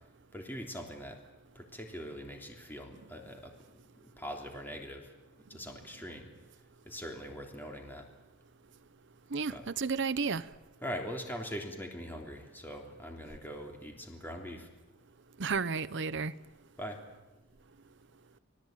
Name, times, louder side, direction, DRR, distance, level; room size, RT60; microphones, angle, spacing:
voice 1, 0.3-1.2 1.5-5.1 5.5-6.3 6.8-8.1 9.5-9.6 10.8-14.7 16.8-17.0, equal, 10° left, 3.3 m, -42 dB
voice 2, 9.3-10.4 15.4-16.3, right 5 dB, 60° right, 0.8 m, -32 dB
25.5 x 18.0 x 9.1 m
head